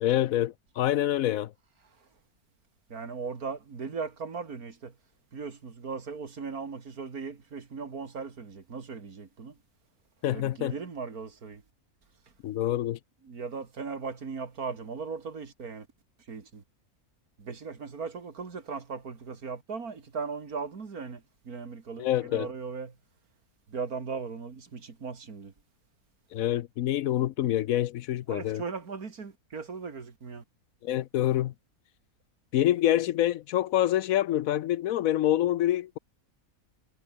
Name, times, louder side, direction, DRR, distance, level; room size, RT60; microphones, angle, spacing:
voice 1, 0.0-1.5 10.2-10.7 12.4-13.0 22.0-22.5 26.3-28.6 30.8-31.5 32.5-36.0, left 13 dB, 70° left, 1.0 m, -26 dB
voice 2, 2.9-5.0 5.3-9.6 10.2-11.6 13.2-15.9 16.3-16.6 17.4-23.0 23.7-25.5 28.3-30.4, right 5 dB, 80° right, 2.8 m, -38 dB
omnidirectional pair, 1.5 m